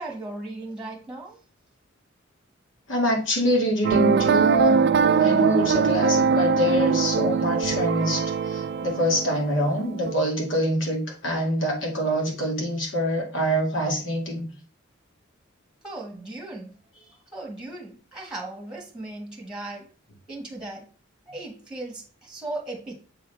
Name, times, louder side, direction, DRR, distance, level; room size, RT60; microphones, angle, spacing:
voice 1, 0.0-1.4 15.8-19.9 20.3-20.9 21.3-23.0, right 2 dB, 5° right, -1 dB, 1.4 m, -37 dB
voice 2, 2.9-4.8 5.2-14.5, equal, 70° left, 0 dB, 2.0 m, -25 dB
sound 1, 3.8-10.1, right 5 dB, 55° right, 0.4 m, -22 dB
7.3 x 3.8 x 3.4 m, 0.37 s
head